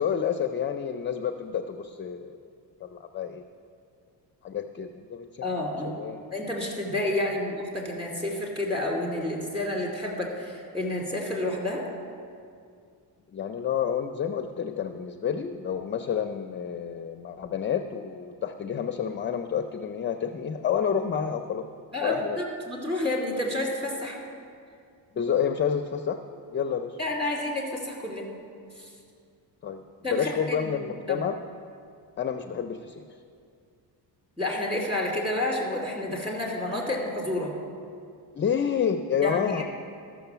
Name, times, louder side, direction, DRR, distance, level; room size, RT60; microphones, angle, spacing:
voice 1, 0.0-2.4 2.8-3.4 4.4-5.4 5.8-6.2 13.3-21.7 22.0-22.4 25.1-26.2 26.5-27.0 29.6-29.8 30.1-31.4 32.2-33.1 38.3-39.6, left 7 dB, 30° left, 7 dB, 0.4 m, -29 dB
voice 2, 5.4-6.0 6.3-11.8 21.9-24.2 27.0-28.3 28.8-28.9 30.0-30.7 31.1-31.2 34.4-37.5 39.2-39.6, left 1 dB, 15° right, -2 dB, 2.5 m, -30 dB
13.5 x 6.2 x 6.8 m, 2.3 s
cardioid pair, 130°, 42 cm